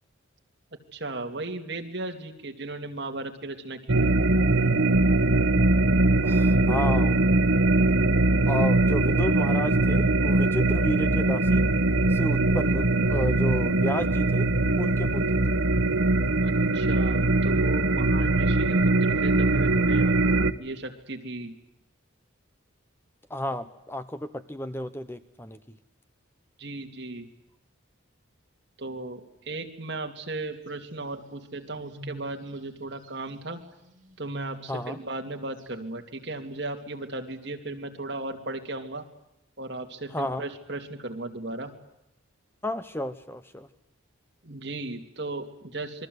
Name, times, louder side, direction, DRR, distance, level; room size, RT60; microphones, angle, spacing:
voice 1, 0.9-4.1 16.4-20.1 20.6-21.5 26.6-27.3 28.8-33.6 34.2-39.0 39.6-41.7 44.4-46.1, right 2 dB, 55° right, 3 dB, 2.9 m, -36 dB
sound 1, 3.9-20.5, right 2 dB, 85° right, 1.3 m, -22 dB
voice 2, 6.2-7.2 8.5-11.6 12.1-14.5 14.8-15.4 23.3-25.8 34.7-35.0 40.1-40.4 42.6-43.7, left 1 dB, 10° left, 11 dB, 0.9 m, -32 dB
sound 2, 30.7-32.6 33.0-33.1 33.4-33.5 33.8-34.8 35.1-36.5, right 1 dB, 40° right, 5.2 m, -44 dB
28.0 x 22.5 x 8.1 m, 0.86 s
head